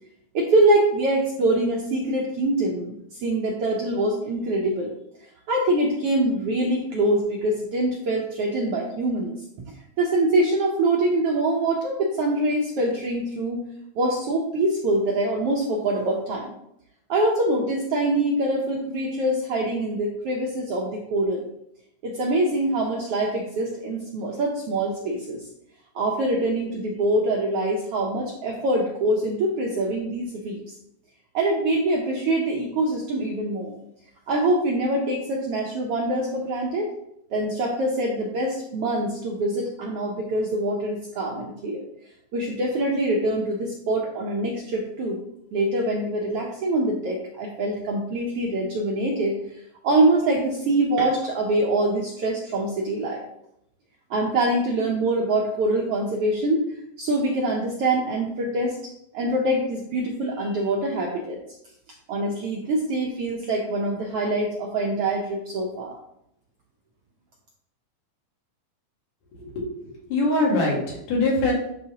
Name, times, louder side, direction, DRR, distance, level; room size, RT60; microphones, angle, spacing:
voice 1, 0.3-4.9 5.5-13.6 14.0-16.5 17.1-21.5 22.0-25.4 25.9-30.6 31.3-33.8 34.3-36.9 37.3-41.8 42.3-45.2 45.5-49.4 49.8-53.2 54.1-56.6 57.0-58.8 59.1-61.4 62.1-66.0, right 1 dB, 75° right, -1 dB, 1.4 m, -24 dB
voice 2, 69.4-71.5, left 2 dB, 90° left, -3 dB, 3.5 m, -23 dB
10.5 x 4.0 x 2.9 m, 0.77 s
omnidirectional pair, 3.6 m